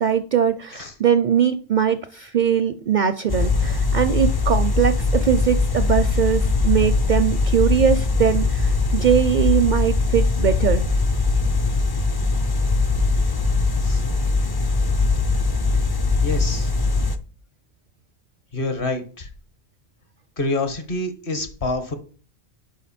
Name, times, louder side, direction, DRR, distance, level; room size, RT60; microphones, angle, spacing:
voice 1, 0.0-10.8, right 8 dB, 55° right, 11 dB, 0.5 m, -21 dB
sound 1, 3.3-17.2, left 3 dB, 30° left, 0.4 m, -21 dB
voice 2, 16.2-16.7 18.5-19.3 20.4-21.9, left 2 dB, 55° left, 8 dB, 1.5 m, -27 dB
11.0 x 4.9 x 4.3 m, 0.40 s
omnidirectional pair, 1.1 m